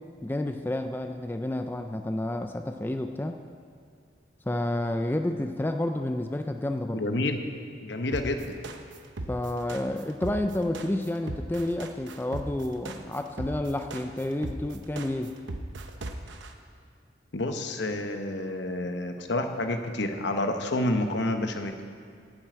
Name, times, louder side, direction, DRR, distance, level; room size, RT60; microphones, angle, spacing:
voice 1, 0.2-3.4 4.5-7.0 9.3-15.3, left 1 dB, 10° left, 6 dB, 0.3 m, -30 dB
voice 2, 6.9-7.4 7.8-8.6 17.3-21.7, left 1 dB, 70° left, 6 dB, 0.9 m, -29 dB
sound 1, 8.1-16.5, right 2 dB, 80° right, 0.8 m, -37 dB
10.0 x 7.5 x 8.8 m, 2.2 s
head